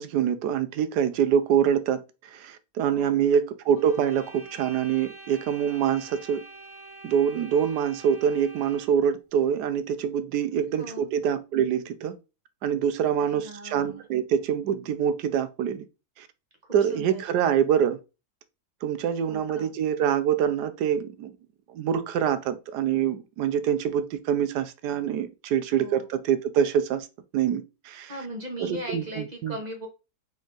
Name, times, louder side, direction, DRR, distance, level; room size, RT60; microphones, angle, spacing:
voice 1, 0.0-2.0 2.3-6.4 7.0-12.2 12.6-15.9 16.2-16.3 16.7-18.0 18.8-21.3 21.7-27.1 27.3-28.1 28.6-29.6, right 8 dB, 85° right, 1.2 m, -25 dB
sound 1, 3.7-9.0, right 2 dB, 10° left, 0.7 m, -46 dB
voice 2, 13.3-14.0 16.8-17.2 19.2-19.7 25.7-26.1 28.1-29.9, equal, 30° right, 1.1 m, -38 dB
4.0 x 3.5 x 3.8 m
omnidirectional pair, 1.7 m